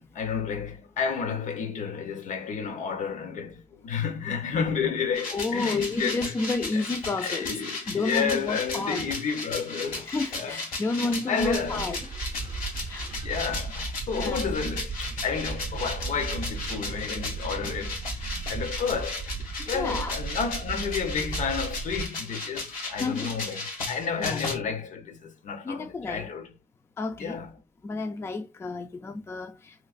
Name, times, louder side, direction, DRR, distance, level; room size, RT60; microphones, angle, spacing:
voice 1, 0.1-6.2 6.7-6.8 7.2-10.6 11.0-11.9 13.2-19.3 19.7-23.6 23.9-26.5 27.2-27.5, left 6 dB, 65° left, 0.7 m, -31 dB
sound 1, 5.1-24.6, left 3 dB, 90° left, 1.4 m, -36 dB
voice 2, 5.3-7.6 7.9-9.1 10.1-12.0 12.9-13.1 14.1-14.4 19.6-20.2 23.0-23.4 24.2-24.4 25.6-26.3 27.0-27.4 27.8-29.7, left 3 dB, 20° left, 0.3 m, -31 dB
sound 2, 11.4-22.1, right 4 dB, 40° right, 0.5 m, -36 dB
3.1 x 3.0 x 2.4 m
cardioid pair, 115°, 14 cm